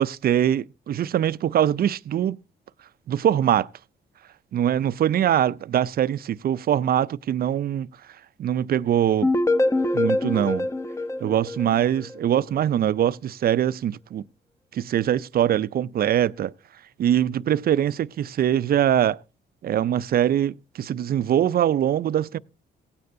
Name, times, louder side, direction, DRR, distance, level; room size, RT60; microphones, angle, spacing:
voice 1, 0.0-2.4 3.1-3.7 4.5-7.9 8.4-9.3 9.9-10.7 11.2-14.2 14.7-16.5 17.0-19.2 19.6-22.4, right 10 dB, 50° right, 0.5 m, -22 dB
sound 1, 9.2-12.2, left 2 dB, 15° left, 0.7 m, -24 dB
17.0 x 9.4 x 2.6 m
cardioid pair, 90°, 20 cm